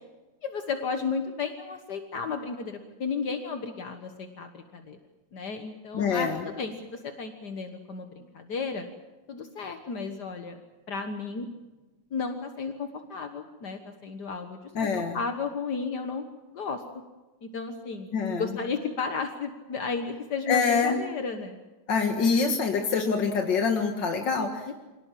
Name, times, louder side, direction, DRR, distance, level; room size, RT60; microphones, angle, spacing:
voice 1, 0.4-5.0 5.3-8.9 9.3-10.6 10.9-11.5 12.1-14.9 15.1-16.2 16.5-16.8 17.4-18.1 18.3-21.6 24.7-24.8, left 5 dB, 65° left, 6 dB, 2.0 m, -33 dB
voice 2, 5.9-6.4 14.7-15.2 18.1-18.6 20.5-21.0 21.9-24.7, left 5 dB, 85° left, 4 dB, 2.4 m, -25 dB
27.5 x 18.0 x 7.5 m, 1.1 s
omnidirectional pair, 1.9 m